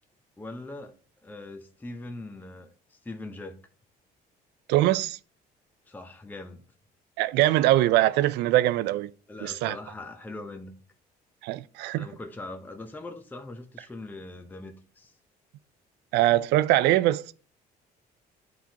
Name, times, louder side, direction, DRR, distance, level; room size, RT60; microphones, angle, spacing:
voice 1, 0.4-0.9 1.2-3.6 5.9-6.6 9.3-10.8 11.9-15.1, left 2 dB, 10° left, 0.6 m, -41 dB
voice 2, 4.7-5.2 7.2-9.1 9.4-9.8 11.4-12.1 16.1-17.3, right 15 dB, 85° right, 0.4 m, -22 dB
9.4 x 4.3 x 2.8 m
cardioid pair, 110°, 17 cm